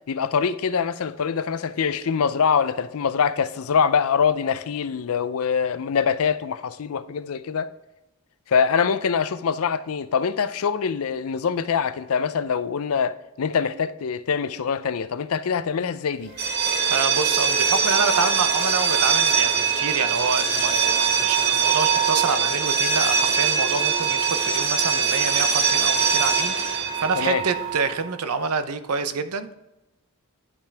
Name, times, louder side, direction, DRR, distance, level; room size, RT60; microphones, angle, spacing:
voice 1, 0.1-7.7 8.5-16.3 27.2-27.4, left 6 dB, 70° left, 0.5 m, -24 dB
sound 1, 16.3-28.0, right 6 dB, 50° right, 1.9 m, -22 dB
voice 2, 16.9-29.5, right 4 dB, 85° right, 0.7 m, -27 dB
11.0 x 5.7 x 3.4 m
head